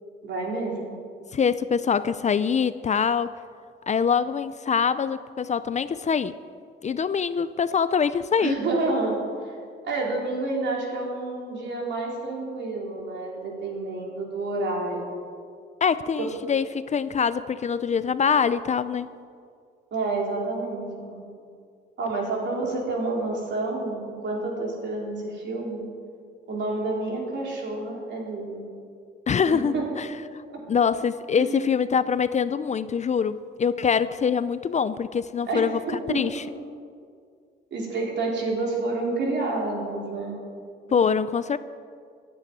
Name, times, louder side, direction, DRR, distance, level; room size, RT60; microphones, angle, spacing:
voice 1, 0.2-0.9 8.4-9.6 9.8-15.0 16.2-16.3 19.9-21.2 22.0-25.8 26.5-28.6 29.5-29.8 30.5-30.6 31.4-31.6 35.5-36.2 37.7-40.4 40.9-41.0, right 2 dB, 65° right, -2 dB, 4.0 m, -29 dB
voice 2, 1.3-3.3 3.9-6.3 6.8-8.5 15.8-19.1 29.3-30.1 30.7-35.8 36.1-36.4 40.9-41.6, left 6 dB, 35° left, 14 dB, 0.5 m, -24 dB
11.0 x 9.2 x 9.4 m, 2.2 s
cardioid pair, 90°, 20 cm